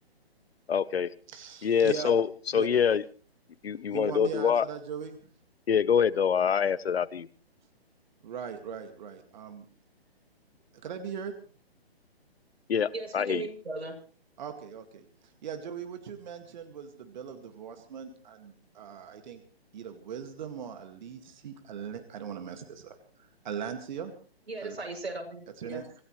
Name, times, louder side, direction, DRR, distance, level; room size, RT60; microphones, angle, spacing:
voice 1, 0.7-1.1 1.6-2.3 2.5-3.0 3.6-4.6 5.7-7.3 12.7-13.4, left 7 dB, 70° left, 19 dB, 1.1 m, -25 dB
voice 2, 1.3-2.1 2.5-2.7 3.9-5.3 8.2-9.7 10.8-11.3 14.4-19.4 19.7-24.1 24.6-24.8 25.6-25.8, right 7 dB, 45° right, 6 dB, 2.2 m, -40 dB
voice 3, 12.9-13.9 24.5-25.9, right 2 dB, 80° right, 1 dB, 7.6 m, -37 dB
26.0 x 17.0 x 3.3 m, 0.40 s
hypercardioid pair, 150°, 31 cm